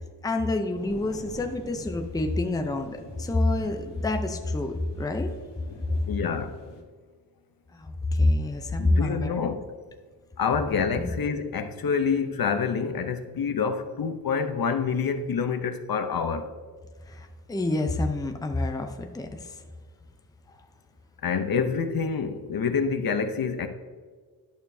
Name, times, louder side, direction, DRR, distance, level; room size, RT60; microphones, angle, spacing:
voice 1, 0.2-5.3 7.8-9.5 11.0-11.1 17.1-19.6, left 2 dB, 10° left, 5 dB, 0.6 m, -27 dB
sound 1, 0.7-6.8, left 3 dB, 85° left, 1.5 m, -46 dB
voice 2, 6.1-6.6 8.8-9.7 10.4-16.5 21.2-23.7, left 6 dB, 55° left, 8 dB, 0.7 m, -27 dB
11.5 x 6.7 x 2.7 m, 1.5 s
wide cardioid pair, 140°, 41 cm